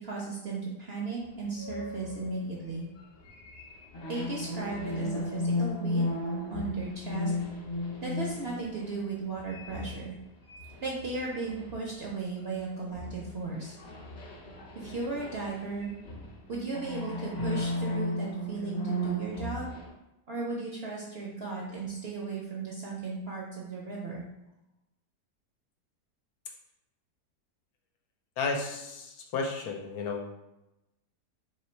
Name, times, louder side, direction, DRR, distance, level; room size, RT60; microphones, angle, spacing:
voice 1, 0.0-2.9 4.1-6.0 6.5-7.3 8.0-10.1 10.8-13.7 14.8-15.9 16.5-19.7 20.3-24.2, right 3 dB, 55° right, -3 dB, 0.7 m, -36 dB
sound 1, 1.5-12.6 12.9-19.9, left 1 dB, 55° left, 0.7 m, -35 dB
voice 2, 28.4-30.2, left 4 dB, 75° left, 2 dB, 1.1 m, -33 dB
3.2 x 3.0 x 4.3 m, 0.92 s
omnidirectional pair, 1.8 m